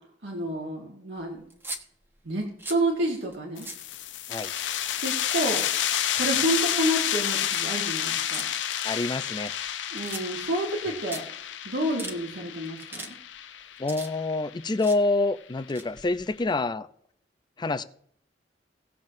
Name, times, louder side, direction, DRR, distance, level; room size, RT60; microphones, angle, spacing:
voice 1, 0.2-1.4 2.3-3.7 5.0-5.6 6.1-8.5 9.9-11.2 11.7-13.2, right 1 dB, 90° right, 1.8 m, -29 dB
sound 1, 1.5-1.8 2.4-2.9 3.3-3.4 3.6-3.9 4.4-5.0 5.2-5.8 6.2-6.6 7.4-7.6 8.3-8.4 9.1-9.7 10.0-10.5 10.8-10.9 11.1-11.2 11.7-12.2 12.7-13.1 13.4-14.4 14.7-15.0 15.6-16.5, right 1 dB, 15° right, 1.2 m, -40 dB
sound 2, 3.6-14.9, left 10 dB, 85° left, 0.6 m, -30 dB
voice 2, 8.8-9.5 13.8-16.9 17.6-17.8, left 2 dB, 25° left, 0.5 m, -27 dB
18.0 x 7.4 x 2.6 m
head